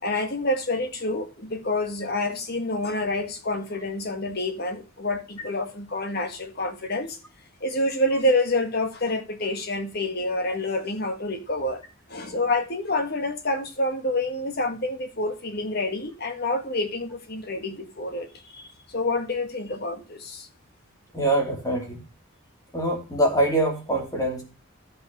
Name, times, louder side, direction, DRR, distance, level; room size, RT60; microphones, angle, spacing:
voice 1, 0.0-7.2 7.6-11.8 12.1-18.3 18.5-20.5, left 2 dB, 45° left, 1.6 m, -27 dB
voice 2, 21.1-22.0 22.7-24.4, right 1 dB, 15° left, 2.9 m, -24 dB
12.0 x 5.4 x 5.3 m
head